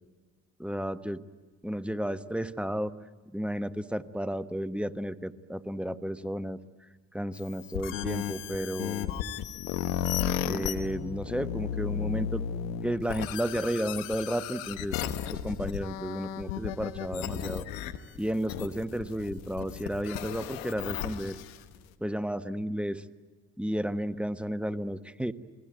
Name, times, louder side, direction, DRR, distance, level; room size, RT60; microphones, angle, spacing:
voice 1, 0.6-1.2 1.6-2.9 3.3-6.6 7.1-9.2 10.4-12.4 12.8-15.0 15.3-17.6 18.1-21.4 22.0-23.0 23.6-25.3, equal, 5° right, 12 dB, 1.3 m, -32 dB
sound 1, 7.3-21.8, left 10 dB, 85° left, 1.2 m, -34 dB
29.5 x 21.0 x 9.2 m, 1.4 s
hypercardioid pair, 45°, 39 cm